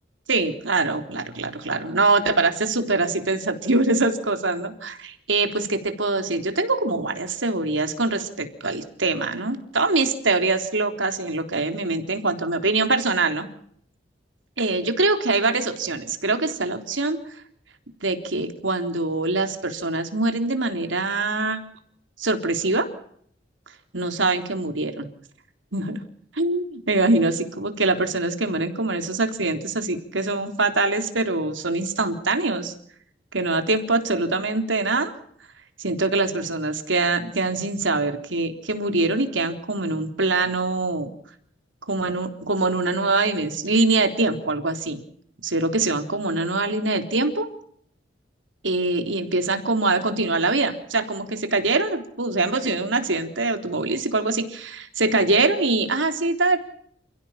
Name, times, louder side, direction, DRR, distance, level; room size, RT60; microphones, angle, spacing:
voice 1, 0.3-13.5 14.6-17.2 18.0-21.6 22.2-22.9 23.9-25.1 25.7-26.0 26.3-32.7 33.3-35.1 35.8-41.1 41.9-45.0 45.4-47.5 48.6-56.6, right 3 dB, 90° right, 6 dB, 3.7 m, -23 dB
29.0 x 16.0 x 7.4 m, 0.64 s
head